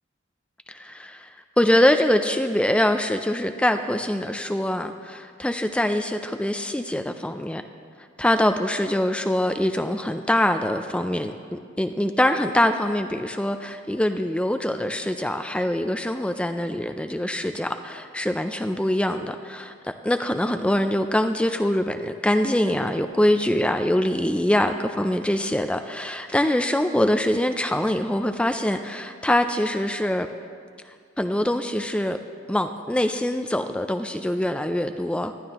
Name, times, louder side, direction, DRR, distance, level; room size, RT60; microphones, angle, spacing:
voice 1, 0.7-1.3 1.6-7.6 8.2-30.3 31.2-32.2 32.5-35.3, left 1 dB, 5° left, 7 dB, 0.3 m, -24 dB
19.0 x 13.0 x 3.0 m, 2.1 s
head